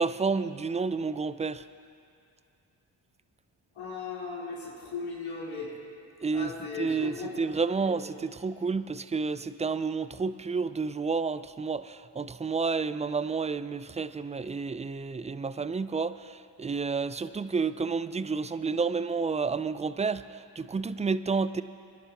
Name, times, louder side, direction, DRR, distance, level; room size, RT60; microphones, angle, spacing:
voice 1, 0.0-1.6 6.2-6.5 6.8-21.6, right 4 dB, 15° right, 14 dB, 0.4 m, -30 dB
voice 2, 3.8-5.7 6.3-7.4 7.8-8.0, left 4 dB, 70° left, -7 dB, 3.7 m, -37 dB
24.0 x 11.0 x 2.9 m, 2.5 s
supercardioid pair, 45°, 50 cm